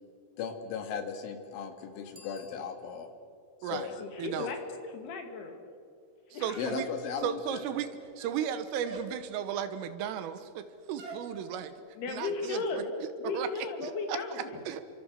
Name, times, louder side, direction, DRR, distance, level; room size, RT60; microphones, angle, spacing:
voice 1, 0.4-3.1 3.6-4.0 4.3-4.5 6.6-7.6, left 6 dB, 75° left, 7 dB, 4.3 m, -37 dB
Bicycle bell, 2.1-3.3, left 2 dB, 5° right, 5.8 m, -57 dB
voice 2, 4.0-4.6 4.8-5.6 6.3-6.5 12.0-12.9 13.2-14.5, left 4 dB, 60° left, 5 dB, 4.0 m, -35 dB
voice 3, 6.4-6.9 7.2-7.9 8.2-11.7 12.1-12.8 13.3-13.5 13.8-14.2 14.7-14.8, right 9 dB, 80° right, 11 dB, 3.9 m, -35 dB
sound 1, 6.5-7.2 8.0-8.5 8.8-9.2 11.0-11.3, right 3 dB, 40° right, 2.8 m, -45 dB
30.0 x 25.0 x 6.7 m, 2.4 s
omnidirectional pair, 5.8 m